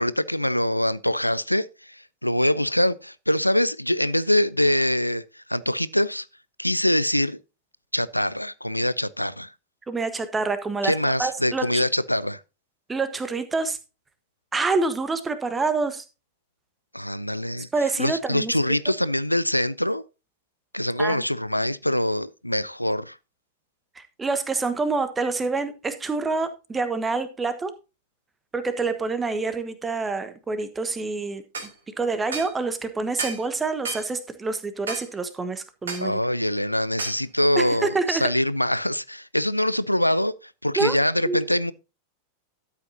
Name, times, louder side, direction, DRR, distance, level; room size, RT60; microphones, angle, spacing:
voice 1, 0.0-6.3 6.6-7.4 7.9-9.5 10.8-12.4 16.9-17.7 18.0-20.0 20.7-23.2 36.0-41.7, left 1 dB, 90° left, 0.4 m, -24 dB
voice 2, 9.9-11.8 12.9-13.8 14.5-16.0 17.7-18.9 21.0-21.2 24.0-27.7 28.5-31.4 32.0-36.2 37.6-38.3 40.8-41.0 41.2-41.4, right 3 dB, 15° right, 1.3 m, -27 dB
sound 1, 31.5-31.7 32.3-32.5 33.2-33.5 33.9-34.1 34.9-35.1 35.9-36.1 37.0-37.2, right 4 dB, 70° right, 2.6 m, -32 dB
12.5 x 8.1 x 2.8 m
figure-of-eight pair, 90°, 0 cm